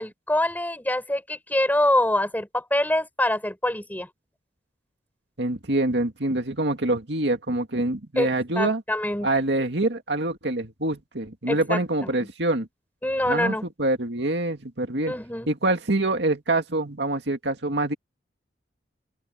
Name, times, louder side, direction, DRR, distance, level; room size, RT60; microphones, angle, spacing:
voice 1, 0.0-4.1 8.2-8.3 8.5-9.3 11.5-12.1 13.0-13.6 15.1-15.5, left 1 dB, 10° left, 5.8 m, -25 dB
voice 2, 5.4-8.8 9.2-12.7 13.3-15.1 15.5-17.9, right 2 dB, 70° right, 2.4 m, -25 dB
open air
head